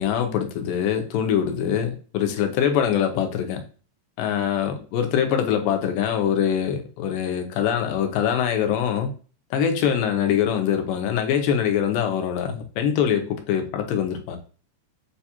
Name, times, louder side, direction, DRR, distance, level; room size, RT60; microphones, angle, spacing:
voice 1, 0.0-3.6 4.2-9.1 9.5-14.4, left 8 dB, 85° left, 2.3 m, -23 dB
6.9 x 2.3 x 2.8 m
omnidirectional pair, 3.9 m